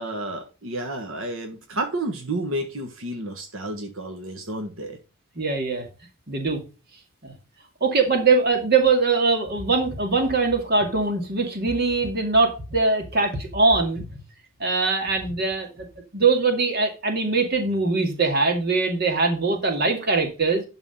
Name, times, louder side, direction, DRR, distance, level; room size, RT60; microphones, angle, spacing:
voice 1, 0.0-5.0, right 1 dB, 70° right, 3 dB, 1.5 m, -31 dB
voice 2, 5.4-5.9 6.3-6.6 7.2-7.3 7.8-14.0 14.6-15.9 16.1-20.6, right 4 dB, 45° right, 4 dB, 2.2 m, -22 dB
11.5 x 4.1 x 5.3 m, 0.32 s
head